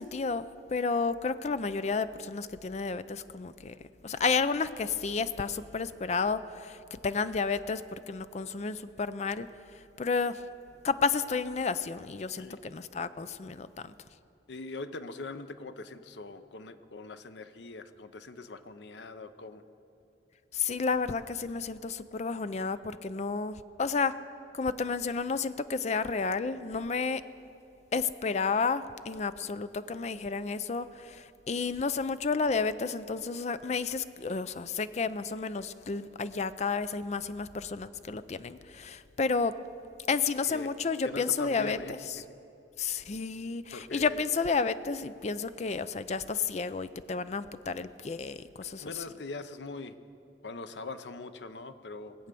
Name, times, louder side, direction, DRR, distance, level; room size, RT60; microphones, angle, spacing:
voice 1, 0.0-3.8 4.0-10.4 10.8-13.9 20.5-24.1 24.5-27.2 27.9-39.5 40.1-41.8 42.2-42.3 42.8-48.9, left 4 dB, 40° left, 13 dB, 0.4 m, -31 dB
voice 2, 14.5-19.6 40.5-40.7 41.0-42.3 43.7-44.2 48.8-50.0 50.4-52.2, left 3 dB, 85° left, 11 dB, 0.7 m, -42 dB
20.5 x 8.0 x 6.8 m, 2.8 s
head